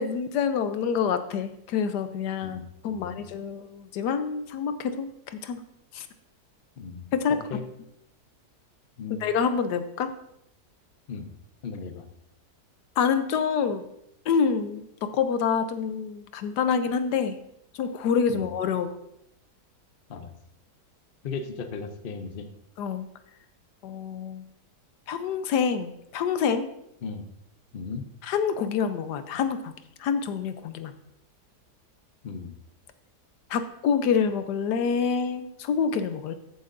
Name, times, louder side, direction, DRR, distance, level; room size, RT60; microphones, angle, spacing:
voice 1, 0.0-5.6 5.9-6.1 7.1-7.4 9.2-10.1 13.0-13.8 14.3-17.4 17.7-19.0 22.8-23.1 23.8-24.4 25.1-26.7 28.2-29.7 30.0-30.9 33.5-36.3, left 6 dB, 80° left, 10 dB, 1.3 m, -27 dB
voice 2, 2.4-3.2 6.8-7.6 9.0-9.3 11.1-11.3 11.6-12.0 18.3-18.5 20.1-20.3 21.2-22.4 27.0-27.2 27.7-28.1 32.2-32.5, left 5 dB, 45° left, 7 dB, 0.8 m, -36 dB
13.5 x 8.0 x 2.6 m, 0.79 s
omnidirectional pair, 1.8 m